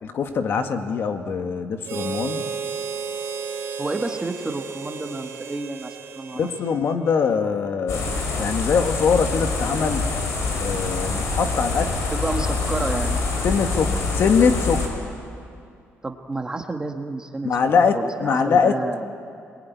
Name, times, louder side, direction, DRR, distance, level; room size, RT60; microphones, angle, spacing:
voice 1, 0.0-2.5 6.3-8.0 8.4-10.1 10.6-12.0 13.4-14.8 17.4-18.8, left 5 dB, 55° left, 6 dB, 1.7 m, -22 dB
Harmonica, 1.8-7.3, right 6 dB, 70° right, 2.5 m, -33 dB
voice 2, 3.8-6.4 12.1-13.2 16.0-17.5 17.9-19.1, right 2 dB, 15° right, 5 dB, 1.4 m, -30 dB
sound 1, 7.9-14.9, left 3 dB, 85° left, 5.4 m, -25 dB
28.0 x 21.0 x 9.5 m, 2.5 s
cardioid pair, 150°, 5 cm